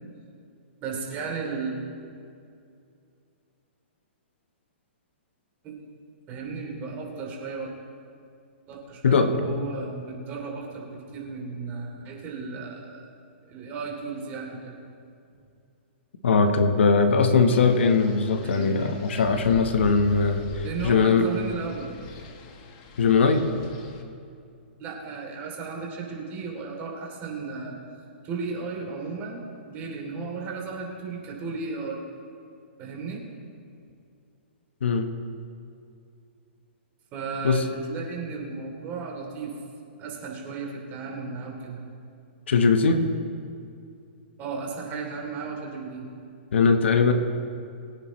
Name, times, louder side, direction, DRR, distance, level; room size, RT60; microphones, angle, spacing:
voice 1, 0.8-1.7 5.6-5.8 6.3-7.7 8.7-13.1 13.4-14.7 18.4-19.0 20.6-21.9 24.8-27.8 28.2-32.0 32.8-33.2 37.1-39.5 40.0-41.8 44.4-46.1, right 4 dB, 30° right, -2 dB, 3.0 m, -34 dB
voice 2, 9.0-9.6 16.2-21.3 23.0-23.5 34.8-35.1 37.4-37.7 42.5-43.0 46.5-47.1, left 4 dB, 80° left, 7 dB, 1.2 m, -20 dB
Wind, 17.5-24.0, left 3 dB, 40° left, 1.4 m, -42 dB
22.5 x 9.5 x 3.1 m, 2.5 s
hypercardioid pair, 145°, 6 cm